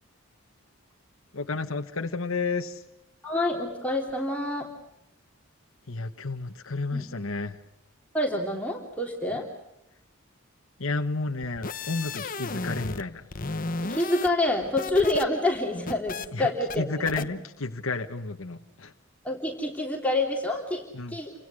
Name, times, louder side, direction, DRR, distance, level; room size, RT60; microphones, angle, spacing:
voice 1, 1.3-2.8 5.9-7.6 10.8-13.2 16.3-16.5 16.8-18.9 20.9-21.1, left 3 dB, 70° left, 4 dB, 1.3 m, -31 dB
voice 2, 3.2-4.7 6.9-7.1 8.1-9.4 13.8-17.3 19.2-21.3, left 2 dB, 5° left, -1 dB, 3.2 m, -27 dB
sound 1, 11.4-13.0 13.3-15.2 15.5-16.3 16.7-16.8 17.1-17.2, left 3 dB, 40° left, 1.1 m, -34 dB
30.0 x 27.0 x 6.4 m, 0.87 s
head